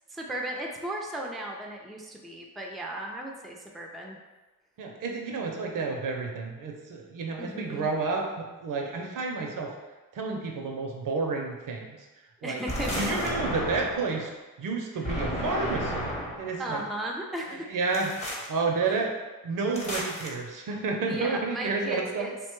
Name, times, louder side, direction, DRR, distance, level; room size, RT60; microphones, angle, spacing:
voice 1, 0.1-4.2 7.4-7.9 12.4-12.9 16.6-17.7 18.8-19.0 21.1-22.3, right 1 dB, ahead, 0 dB, 0.4 m, -35 dB
voice 2, 4.8-9.7 10.1-12.0 12.4-12.6 13.0-14.3 14.6-16.1 16.4-16.8 17.5-18.1 18.5-19.1 19.4-22.3, right 4 dB, 65° right, 1 dB, 0.6 m, -30 dB
sound 1, 12.7-14.1 15.0-16.5 17.9-18.5 19.7-20.3, equal, 20° left, 0.8 m, -32 dB
2.7 x 2.2 x 3.0 m, 1.2 s
cardioid pair, 65°, 34 cm